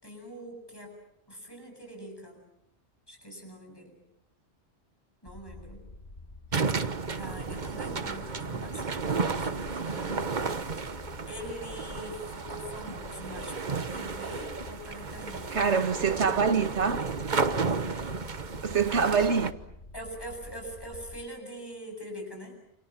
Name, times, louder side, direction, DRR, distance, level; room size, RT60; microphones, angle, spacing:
voice 1, 0.0-1.0 1.3-2.4 3.1-4.0 5.2-5.9 7.2-10.6 11.3-15.7 19.9-22.6, equal, 20° left, 8.0 m, -43 dB
sound 1, 5.3-21.2, left 2 dB, 60° left, 2.5 m, -47 dB
sound 2, 6.5-19.5, right 4 dB, 45° right, 1.3 m, -33 dB
voice 2, 15.5-17.0 18.6-19.5, right 5 dB, 80° right, 1.9 m, -25 dB
29.0 x 28.5 x 5.9 m
omnidirectional pair, 1.2 m